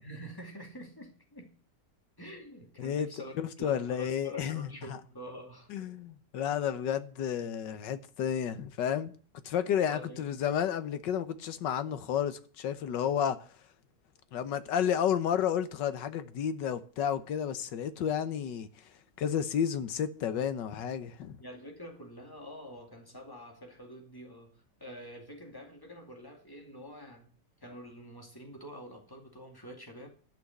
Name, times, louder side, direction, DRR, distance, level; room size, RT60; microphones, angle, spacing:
voice 1, 0.0-1.5 2.2-5.7 9.8-10.5 21.4-30.1, equal, 10° left, 2.4 m, -46 dB
voice 2, 3.4-4.7 5.7-9.1 9.4-13.4 14.3-18.7 19.2-21.4, left 9 dB, 85° left, 1.6 m, -31 dB
11.5 x 6.1 x 7.9 m
omnidirectional pair, 1.9 m